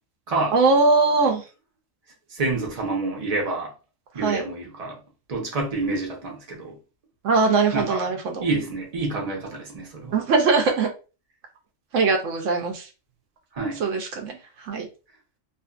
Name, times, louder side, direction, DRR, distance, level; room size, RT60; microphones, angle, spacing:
voice 1, 0.5-1.4 4.2-4.4 7.2-8.5 10.1-10.9 11.9-12.9 13.8-14.9, right 4 dB, 70° right, 0.9 m, -21 dB
voice 2, 2.3-3.7 4.1-5.0 5.3-6.8 7.7-8.1 8.4-10.2 13.5-13.8, right 3 dB, 40° right, 0.6 m, -28 dB
2.5 x 2.5 x 2.3 m
omnidirectional pair, 1.4 m